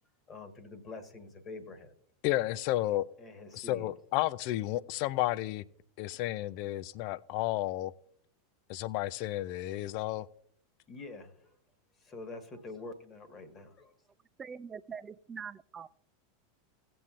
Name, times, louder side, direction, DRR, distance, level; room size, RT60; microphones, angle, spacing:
voice 1, 0.3-1.9 3.2-3.9 10.9-11.6 12.0-13.9, left 3 dB, 25° left, 1.5 m, -46 dB
voice 2, 2.2-3.1 3.5-5.6 6.0-7.9 8.7-10.3, left 16 dB, 50° left, 0.4 m, -32 dB
voice 3, 14.4-15.9, right 6 dB, 20° right, 0.4 m, -43 dB
17.5 x 7.7 x 2.5 m
figure-of-eight pair, 85°, 0 cm